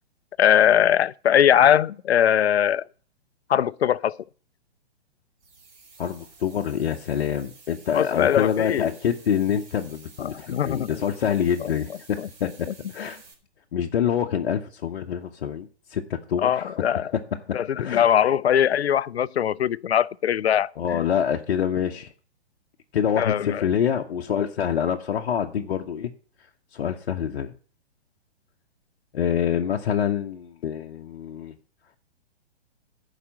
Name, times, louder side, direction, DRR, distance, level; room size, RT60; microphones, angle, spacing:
voice 1, 0.4-2.8 3.5-4.2 7.9-8.9 10.2-10.9 11.6-11.7 12.2-12.5 16.4-17.1 17.5-21.0 23.2-23.7, left 9 dB, 75° left, 0.5 m, -21 dB
sound 1, 5.4-13.3, right 4 dB, 30° right, 2.5 m, -51 dB
voice 2, 6.0-13.2 13.7-17.2 17.5-18.1 20.8-22.1 22.9-26.1 26.7-27.5 29.1-31.5, left 8 dB, 60° left, 0.8 m, -26 dB
11.0 x 5.0 x 7.5 m
figure-of-eight pair, 120°, 32 cm